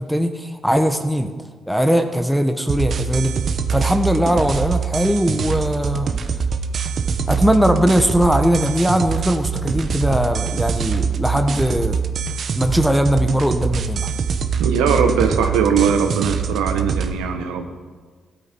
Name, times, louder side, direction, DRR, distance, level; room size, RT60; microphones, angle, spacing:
voice 1, 0.0-1.3 1.7-3.3 3.7-6.1 7.3-12.0 12.6-14.1, equal, ahead, 6 dB, 1.3 m, -19 dB
sound 1, 2.7-17.1, right 6 dB, 60° right, 1.1 m, -24 dB
voice 2, 14.6-17.7, right 6 dB, 80° right, 6 dB, 1.3 m, -20 dB
16.5 x 12.5 x 4.6 m, 1.5 s
hypercardioid pair, 50°, 0 cm